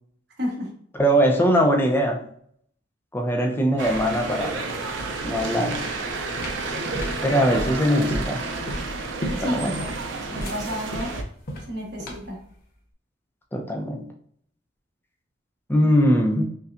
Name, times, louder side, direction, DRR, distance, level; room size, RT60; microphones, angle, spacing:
voice 1, 0.4-0.7 9.4-11.1 11.7-12.4, left 1 dB, 60° right, -2 dB, 1.3 m, -32 dB
voice 2, 1.0-2.2 3.1-4.6 5.2-5.8 7.2-8.4 9.4-9.8 13.5-14.0 15.7-16.4, equal, 10° left, 2 dB, 0.5 m, -21 dB
sound 1, 3.8-11.2, right 3 dB, 75° right, 0.5 m, -31 dB
sound 2, 6.1-12.4, equal, 50° left, 0.9 m, -33 dB
5.4 x 2.3 x 2.5 m, 0.63 s
head